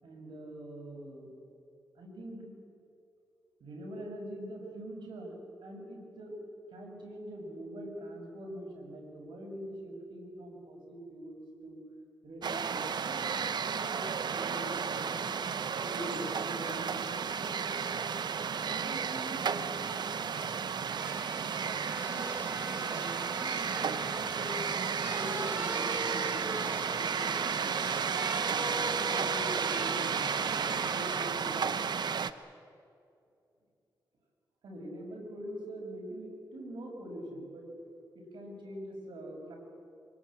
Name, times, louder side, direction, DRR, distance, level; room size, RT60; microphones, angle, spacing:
voice 1, 0.0-1.3 2.0-2.5 3.6-5.4 5.6-6.4 6.7-11.8 12.2-15.3 15.8-17.9 18.7-19.8 20.1-20.4 22.0-22.4 22.8-24.6 25.1-28.1 28.5-31.6 34.6-37.7 38.1-39.6, right 1 dB, 80° right, 1 dB, 6.7 m, -44 dB
sound 1, 12.4-32.3, right 6 dB, 65° right, 0.9 m, -33 dB
sound 2, 21.0-31.3 31.8-32.0, right 1 dB, 25° right, 2.0 m, -42 dB
24.0 x 22.5 x 8.6 m, 2.5 s
cardioid pair, 80°, 8 cm